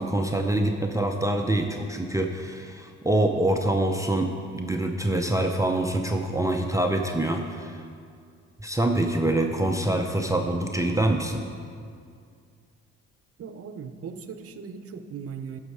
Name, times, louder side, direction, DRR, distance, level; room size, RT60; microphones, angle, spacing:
voice 1, 0.0-7.8 8.6-11.5, right 1 dB, 10° right, 2 dB, 0.6 m, -25 dB
voice 2, 13.4-15.6, right 6 dB, 50° right, 9 dB, 0.7 m, -38 dB
12.0 x 6.4 x 4.8 m, 2.3 s
cardioid pair, 90°, 30 cm